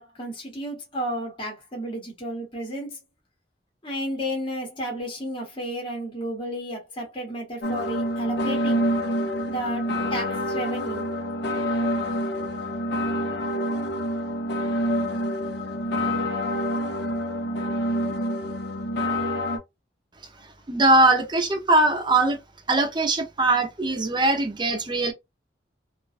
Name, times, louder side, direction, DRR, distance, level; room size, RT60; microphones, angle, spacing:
voice 1, 0.0-3.0 3.8-8.8 9.5-11.1, equal, 30° left, 0.8 m, -32 dB
sound 1, 7.6-19.6, equal, 65° left, 0.6 m, -27 dB
voice 2, 20.7-22.4 22.7-25.1, right 2 dB, 25° right, 0.5 m, -21 dB
2.4 x 2.2 x 2.4 m
head